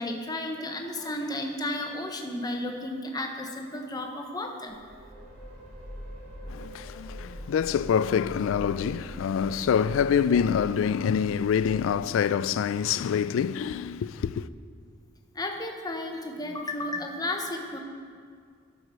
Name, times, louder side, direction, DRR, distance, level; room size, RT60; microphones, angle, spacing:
voice 1, 0.0-4.8 15.3-17.8, left 1 dB, 20° left, 0.8 m, -33 dB
sound 1, 4.7-12.5, equal, 35° right, 2.3 m, -43 dB
voice 2, 6.5-14.5, left 7 dB, 70° left, 0.3 m, -26 dB
11.5 x 4.9 x 6.1 m
head